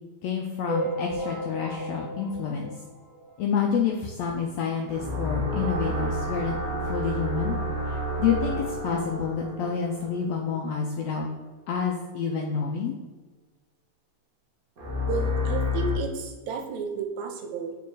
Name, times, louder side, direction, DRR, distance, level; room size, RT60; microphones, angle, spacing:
voice 1, 0.2-2.7 3.4-6.6 6.8-7.5 7.9-11.3 11.7-12.9, left 6 dB, 75° left, 1 dB, 1.6 m, -28 dB
sound 1, 0.7-3.5 4.0-4.1 4.3-4.4 4.7-4.8 5.7-5.8 6.2-6.3, right 1 dB, 25° right, 1.8 m, -34 dB
sound 2, 4.9-10.7 14.8-15.9, left 1 dB, 45° right, 1.1 m, -30 dB
voice 2, 15.0-17.8, right 6 dB, 75° right, 5 dB, 1.9 m, -32 dB
4.7 x 4.6 x 4.7 m, 1.2 s
omnidirectional pair, 3.5 m